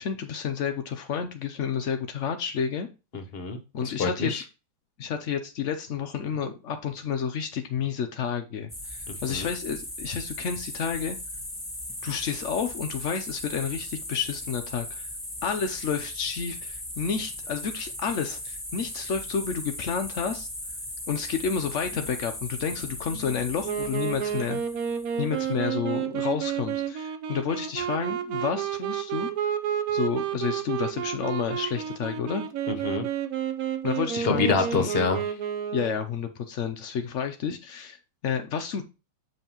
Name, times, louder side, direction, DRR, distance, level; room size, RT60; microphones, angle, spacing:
voice 1, 0.0-2.9 3.7-4.4 5.0-11.2 12.0-15.1 15.4-20.5 21.1-24.6 25.2-29.3 29.9-32.5 33.8-34.9 35.7-38.8, left 7 dB, 75° left, 6 dB, 0.6 m, -30 dB
voice 2, 3.1-4.4 9.3-9.5 32.7-33.0 34.2-35.2, left 4 dB, 40° left, 7 dB, 1.0 m, -27 dB
sound 1, 8.7-25.4, left 1 dB, 10° left, 1.3 m, -38 dB
Wind instrument woodwind instrument, 23.6-36.1, right 9 dB, 60° right, 1.0 m, -30 dB
8.0 x 5.5 x 3.0 m, 0.29 s
omnidirectional pair, 2.1 m